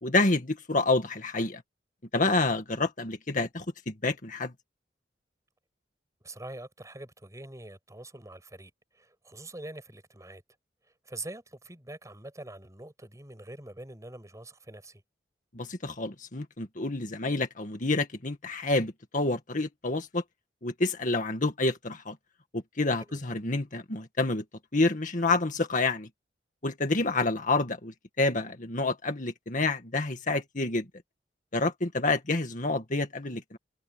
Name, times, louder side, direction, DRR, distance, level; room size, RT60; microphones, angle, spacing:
voice 1, 0.0-1.6 2.1-4.5 15.5-20.2 20.6-22.2 22.5-24.4 24.7-26.1 26.6-30.9 31.5-33.6, left 2 dB, 45° left, 2.0 m, -28 dB
voice 2, 6.2-10.4 11.0-15.0 23.0-23.2, right 2 dB, 20° right, 6.5 m, -44 dB
head